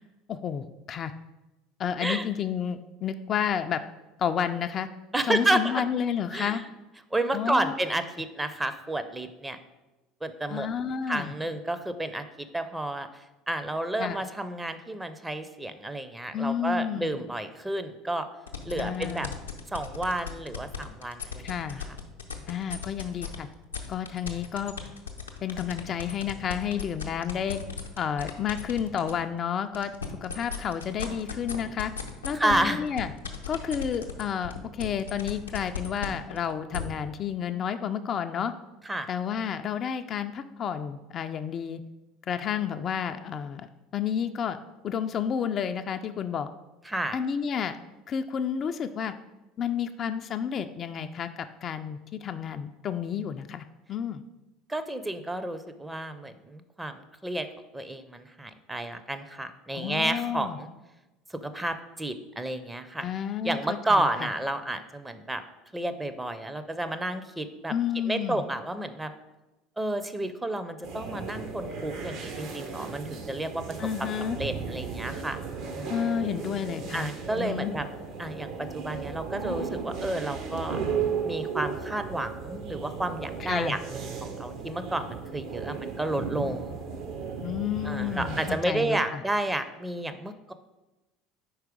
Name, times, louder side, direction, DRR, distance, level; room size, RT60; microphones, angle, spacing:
voice 1, 0.3-1.1 1.8-3.8 4.2-4.9 5.3-6.6 7.3-7.7 10.5-11.3 14.0-14.2 16.3-17.2 18.8-19.3 21.4-21.8 22.5-23.5 23.9-24.7 25.4-27.6 28.0-29.9 30.2-31.9 32.2-33.1 33.5-38.5 39.1-41.8 42.3-43.7 43.9-44.6 44.8-46.5 47.1-47.8 48.1-49.1 49.6-54.2 59.7-60.6 63.0-64.1 67.7-68.4 73.8-74.4 75.9-77.7 83.4-83.8 87.4-89.2, left 8 dB, 40° left, 8 dB, 0.3 m, -31 dB
voice 2, 5.1-5.8 6.3-6.6 7.1-9.6 10.2-10.7 11.1-12.2 12.5-18.3 18.6-19.3 19.7-21.4 32.3-32.8 38.9-39.1 46.9-47.2 54.7-57.5 57.7-60.7 61.4-63.1 63.4-65.4 65.7-67.7 68.1-69.1 69.8-73.6 74.0-75.4 75.7-75.9 76.9-77.8 78.2-80.8 81.2-86.8 87.8-90.5, right 1 dB, 10° right, 9 dB, 0.5 m, -31 dB
sound 1, 18.5-23.4 23.7-29.2 29.6-36.8, left 7 dB, 90° left, 0.6 m, -36 dB
sound 2, 70.8-88.6, right 6 dB, 60° right, 0.9 m, -35 dB
4.7 x 4.5 x 5.0 m, 1.0 s
hypercardioid pair, 70°, 0 cm